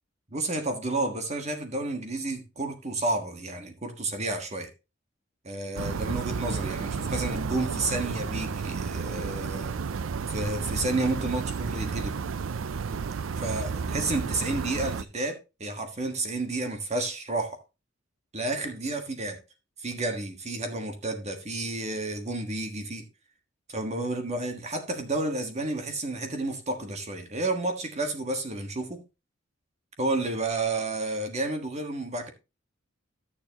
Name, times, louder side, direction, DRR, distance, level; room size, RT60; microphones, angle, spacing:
voice 1, 0.3-4.7 5.4-9.8 10.3-12.2 13.4-17.6 18.3-19.4 19.8-23.1 23.7-29.0 30.0-32.3, right 2 dB, 35° right, 1.5 m, -31 dB
sound 1, 5.8-15.0, right 5 dB, 80° right, 0.5 m, -32 dB
13.0 x 7.1 x 2.9 m
head